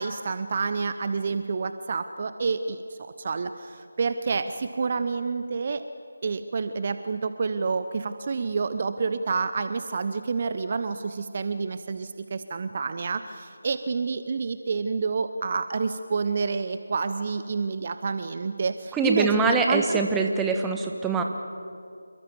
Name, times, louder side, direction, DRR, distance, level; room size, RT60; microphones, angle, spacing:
voice 1, 0.0-5.8 6.2-20.0, right 4 dB, 35° right, 10 dB, 0.9 m, -28 dB
voice 2, 18.9-21.2, right 4 dB, 5° right, 3 dB, 1.4 m, -24 dB
28.0 x 22.5 x 7.1 m, 2.4 s
figure-of-eight pair, 160°, 0 cm